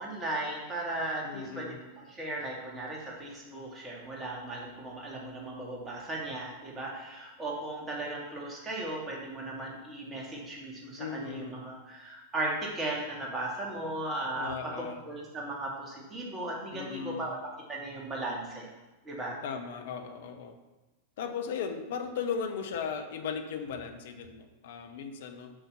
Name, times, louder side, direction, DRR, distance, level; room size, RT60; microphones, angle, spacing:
voice 1, 0.0-18.7 19.0-19.4, right 2 dB, 20° right, -2 dB, 2.4 m, -37 dB
voice 2, 1.2-1.8 11.0-11.6 14.3-15.0 16.7-17.3 19.3-20.6 21.2-25.5, left 6 dB, 55° left, 6 dB, 1.0 m, -37 dB
8.0 x 5.6 x 5.6 m, 1.1 s
figure-of-eight pair, 90°, 0 cm